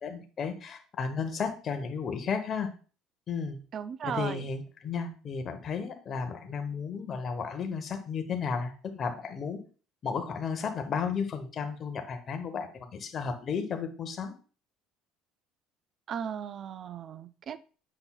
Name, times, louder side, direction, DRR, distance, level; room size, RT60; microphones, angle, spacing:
voice 1, 0.0-2.7 3.3-3.6 4.0-9.6 10.0-14.3, left 6 dB, 40° left, 5 dB, 1.0 m, -33 dB
voice 2, 3.7-4.5 16.1-17.6, right 8 dB, 45° right, 14 dB, 0.4 m, -36 dB
8.0 x 5.7 x 2.3 m, 0.37 s
cardioid pair, 110°, 0 cm